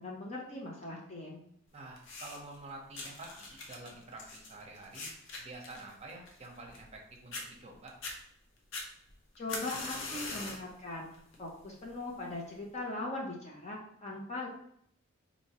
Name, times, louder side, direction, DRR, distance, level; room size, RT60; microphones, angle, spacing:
voice 1, 0.0-1.5 9.4-14.5, left 2 dB, 35° left, -2 dB, 0.6 m, -40 dB
voice 2, 1.7-5.1 5.4-7.9, right 2 dB, 30° right, 0 dB, 0.8 m, -48 dB
sound 1, 2.0-2.6 2.9-7.0 7.3-7.4 7.9-8.2 8.7-10.7 11.1-11.5 12.3-12.4, left 3 dB, 65° left, 0.8 m, -42 dB
4.3 x 2.7 x 2.9 m, 0.70 s
head